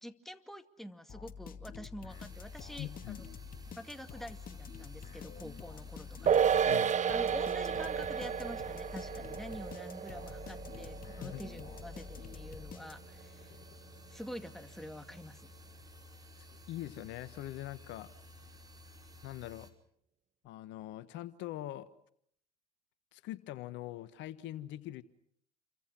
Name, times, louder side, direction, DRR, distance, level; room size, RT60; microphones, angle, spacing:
voice 1, 0.0-3.2 3.8-13.5 14.1-15.5, equal, ahead, 7 dB, 2.3 m, -47 dB
sound 1, 1.1-13.3, left 6 dB, 40° left, 2.4 m, -48 dB
sound 2, 2.1-19.7, left 1 dB, 20° right, 5.2 m, -55 dB
voice 2, 2.8-3.2 6.6-6.9 11.2-11.4 13.5-13.6 16.4-18.1 19.2-19.7 20.4-21.9 23.1-25.0, left 14 dB, 60° left, 12 dB, 1.4 m, -43 dB
sound 3, 6.3-12.9 13.2-13.3, right 8 dB, 35° right, 1.0 m, -32 dB
29.5 x 24.0 x 6.2 m, 0.69 s
hypercardioid pair, 70°, 21 cm